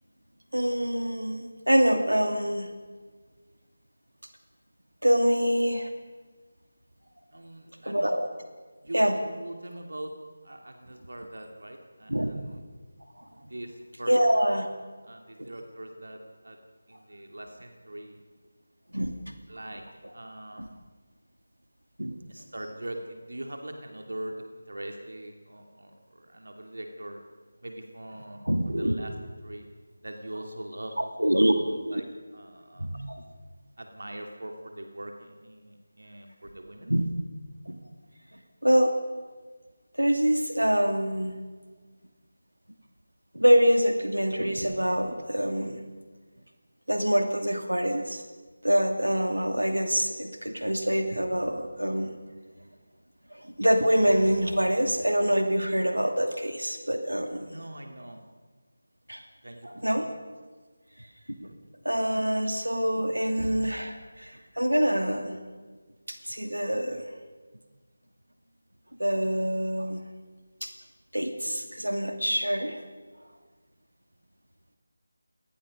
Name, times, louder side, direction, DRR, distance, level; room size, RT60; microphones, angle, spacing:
voice 1, 0.5-2.7 5.0-5.9 7.8-8.3 8.9-9.2 12.1-12.3 13.2-13.3 14.1-14.7 15.4-15.5 18.9-19.2 20.6-20.7 22.0-22.2 28.5-28.9 31.0-31.5 31.9-32.0 32.8-33.2 36.9-37.1 37.7-37.8 38.6-38.9 40.0-41.4 43.3-45.8 46.9-48.2 48.6-52.1 53.3-57.5 59.1-59.2 59.6-60.1 61.3-61.5 61.8-65.4 66.1-67.0 69.0-70.0 70.6-70.7 71.1-72.8, equal, 85° right, 5 dB, 2.7 m, -25 dB
voice 2, 7.3-8.1 8.8-10.1 10.4-12.5 13.5-14.7 15.0-16.6 16.9-18.2 19.5-19.8 20.1-20.8 22.3-27.2 27.6-29.1 29.4-29.7 30.0-30.9 31.2-32.1 32.3-32.9 33.8-37.0 57.4-58.2 59.4-60.2, right 1 dB, 65° right, 3 dB, 2.5 m, -42 dB
29.5 x 19.0 x 5.3 m, 1.4 s
figure-of-eight pair, 160°, 0 cm